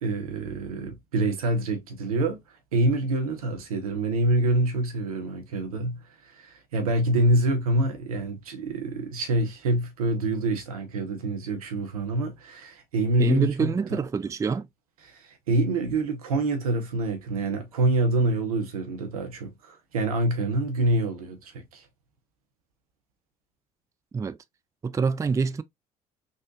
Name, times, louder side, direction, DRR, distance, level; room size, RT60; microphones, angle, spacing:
voice 1, 0.0-2.4 2.7-14.0 15.1-21.8, right 2 dB, 85° right, 0.8 m, -26 dB
voice 2, 13.2-14.7 24.1-24.4 24.8-25.6, right 5 dB, 15° right, 0.3 m, -25 dB
3.9 x 2.5 x 2.5 m
hypercardioid pair, 50°, 18 cm